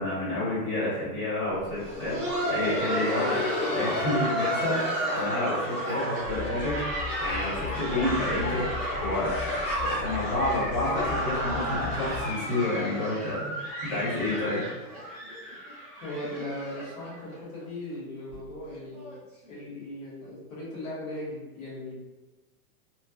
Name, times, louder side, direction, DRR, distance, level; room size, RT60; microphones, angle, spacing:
voice 1, 0.0-2.2 2.5-3.4 3.7-4.8 5.1-6.8 7.2-13.5 13.8-14.6, left 1 dB, 20° left, -11 dB, 1.3 m, -29 dB
Laughter, 1.6-17.3 17.6-17.7 18.3-18.4 18.9-19.2 20.2-20.3, equal, ahead, 0.5 m, -31 dB
sound 1, 6.2-12.2, left 7 dB, 80° left, 0.7 m, -39 dB
voice 2, 16.0-19.1 19.5-22.0, left 1 dB, 65° left, -6 dB, 1.5 m, -38 dB
3.0 x 2.7 x 2.2 m, 1.2 s
supercardioid pair, 160°, 45 cm